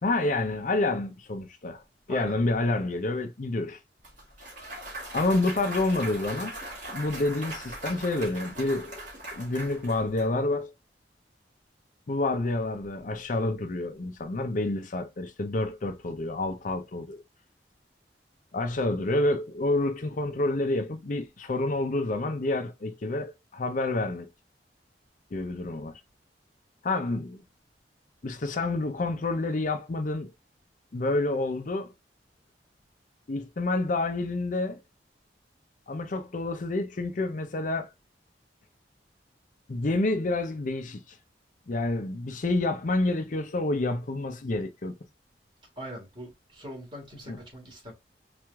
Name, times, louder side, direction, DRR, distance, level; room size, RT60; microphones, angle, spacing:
voice 1, 0.0-1.8 2.1-3.8 5.1-6.6 6.9-9.0 9.3-10.7 12.1-17.2 18.5-24.3 25.3-26.0 26.8-27.4 28.2-30.3 30.9-31.9 33.3-34.8 35.9-37.9 39.7-41.2 41.7-45.0 47.3-47.4, left 2 dB, 45° left, 0.5 m, -28 dB
Clapping / Cheering / Applause, 4.0-10.3, right 1 dB, 45° right, 2.2 m, -40 dB
voice 2, 45.8-47.9, equal, 25° right, 2.1 m, -41 dB
4.5 x 2.5 x 3.5 m
head